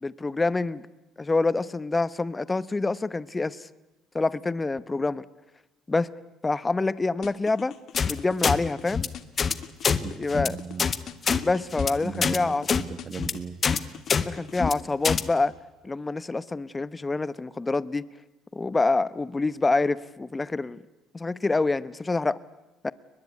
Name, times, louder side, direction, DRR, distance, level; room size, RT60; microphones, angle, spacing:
voice 1, 0.0-0.8 1.2-3.7 4.1-5.2 5.9-6.1 6.4-7.7 8.1-9.1 10.2-10.6 11.4-12.7 14.2-15.5 15.8-18.1 18.5-20.8 21.1-22.4 22.8-22.9, left 3 dB, 20° left, 18 dB, 0.9 m, -26 dB
sound 1, 7.2-8.8 9.1-10.8 11.1-12.7 13.0-14.6, left 10 dB, 60° left, 1.6 m, -43 dB
sound 2, 8.0-8.1 8.4-8.6 8.9-9.1 9.4-9.5 9.8-10.0 10.3-10.5 10.8-11.0 11.2-11.4 11.7-11.9 12.2-12.4 12.7-12.8 13.1-13.3 13.6-13.8 14.1-14.2 14.5-14.7 15.0-15.2, left 6 dB, 40° left, 1.3 m, -24 dB
voice 2, 10.0-10.9 12.0-13.6, right 5 dB, 35° right, 10 dB, 1.5 m, -37 dB
22.5 x 21.0 x 9.6 m, 1.0 s
supercardioid pair, 80°, 0 cm